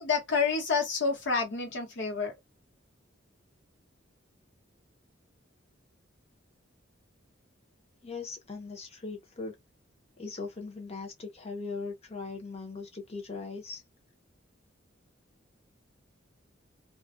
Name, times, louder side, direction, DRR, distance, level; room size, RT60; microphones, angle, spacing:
voice 1, 0.0-2.3, left 5 dB, 60° left, 1.0 m, -28 dB
voice 2, 8.0-9.6 10.2-13.8, left 4 dB, 30° left, 0.7 m, -39 dB
2.3 x 2.1 x 2.5 m
head